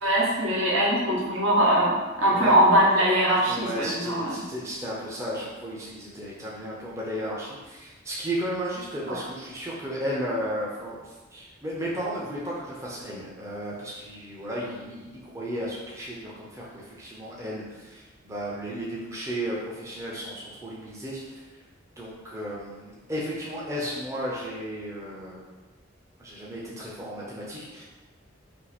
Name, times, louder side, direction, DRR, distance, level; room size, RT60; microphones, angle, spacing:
voice 1, 0.0-4.4 9.1-9.2, right 1 dB, 80° right, -5 dB, 0.9 m, -22 dB
voice 2, 3.4-21.4 22.0-25.4 26.2-27.8, equal, 15° right, -5 dB, 0.5 m, -34 dB
2.8 x 2.5 x 4.0 m, 1.2 s
head